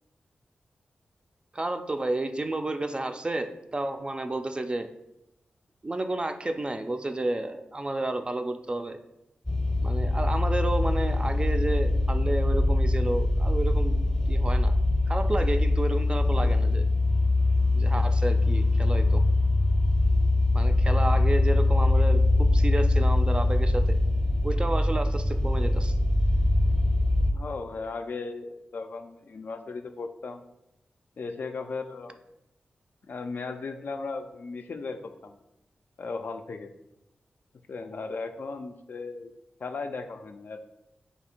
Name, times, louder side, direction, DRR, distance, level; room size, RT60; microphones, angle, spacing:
voice 1, 1.5-3.5 3.7-4.9 5.8-9.0 9.8-14.0 14.3-14.7 15.1-16.9 17.7-19.2 20.5-22.2 22.5-23.8 24.4-26.0, right 2 dB, 30° right, 7 dB, 0.3 m, -31 dB
sound 1, 9.5-27.3, left 2 dB, 10° left, 0.6 m, -23 dB
voice 2, 27.3-30.4 31.2-32.2 33.1-35.3 36.0-36.7 37.7-39.3 39.6-40.6, left 4 dB, 60° left, 6 dB, 0.3 m, -36 dB
2.7 x 2.5 x 4.3 m, 0.86 s
cardioid pair, 55°, 3 cm